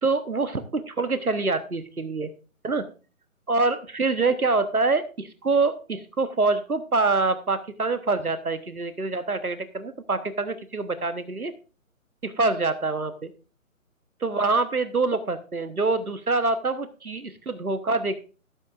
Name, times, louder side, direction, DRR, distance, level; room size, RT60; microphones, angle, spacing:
voice 1, 0.0-2.3 2.6-2.8 3.5-11.5 12.2-13.3 14.2-18.2, right 3 dB, 90° right, 12 dB, 1.1 m, -25 dB
14.5 x 11.0 x 2.4 m, 0.34 s
figure-of-eight pair, 140°, 42 cm